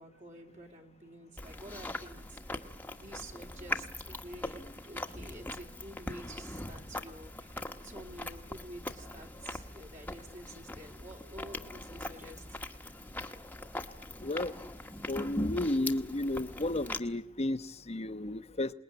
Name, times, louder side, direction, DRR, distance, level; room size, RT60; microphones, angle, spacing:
voice 1, 0.0-2.7 3.0-12.8 13.7-13.9, right 1 dB, 40° right, 1 dB, 3.1 m, -50 dB
Chewing mastication, 1.4-17.0, left 1 dB, 10° left, 1.4 m, -41 dB
voice 2, 14.2-14.5 15.1-18.7, left 1 dB, 35° left, 11 dB, 1.0 m, -33 dB
27.5 x 20.5 x 9.8 m, 0.83 s
head